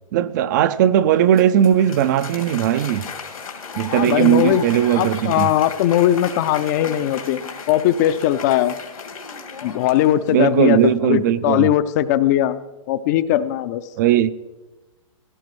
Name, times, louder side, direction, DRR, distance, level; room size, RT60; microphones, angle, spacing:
voice 1, 0.1-3.1 3.7-5.5 10.3-11.7 14.0-14.3, right 11 dB, 35° right, 0.4 m, -18 dB
Applause, 1.1-10.7, left 5 dB, 90° left, 2.5 m, -35 dB
voice 2, 3.9-4.6 4.9-7.4 7.7-8.8 9.6-12.6 12.9-13.8, left 12 dB, 30° left, 0.4 m, -19 dB
16.5 x 12.5 x 3.1 m
hypercardioid pair, 140°, 18 cm